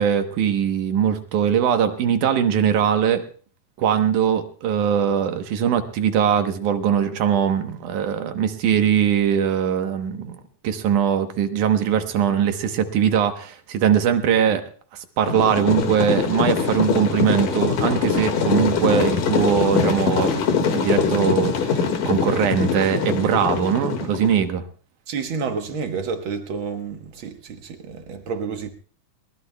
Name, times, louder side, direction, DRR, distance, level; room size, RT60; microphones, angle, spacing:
voice 1, 0.0-3.2 3.8-10.4 10.6-14.6 14.9-24.6, right 8 dB, 75° right, 2.5 m, -21 dB
sound 1, 15.3-24.4, left 5 dB, 90° left, 3.3 m, -23 dB
voice 2, 25.1-28.7, right 5 dB, 60° right, 1.4 m, -29 dB
21.5 x 19.5 x 2.2 m
omnidirectional pair, 3.7 m